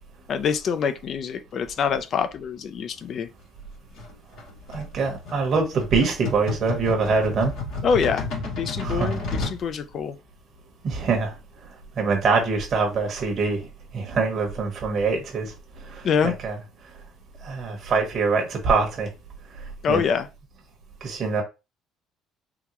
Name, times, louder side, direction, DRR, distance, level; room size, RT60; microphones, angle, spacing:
voice 1, 0.3-3.3 7.8-8.3 8.6-10.2 16.0-16.3 19.8-20.3, left 6 dB, 50° left, 0.4 m, -25 dB
sound 1, 4.0-9.6, left 3 dB, 75° left, 1.8 m, -32 dB
voice 2, 4.7-7.5 8.8-9.2 10.8-11.3 12.0-13.7 13.9-15.5 15.8-16.6 17.4-19.1 19.9-20.0 21.0-21.4, right 4 dB, 50° right, 1.0 m, -24 dB
3.7 x 2.2 x 2.9 m
cardioid pair, 105°, 0 cm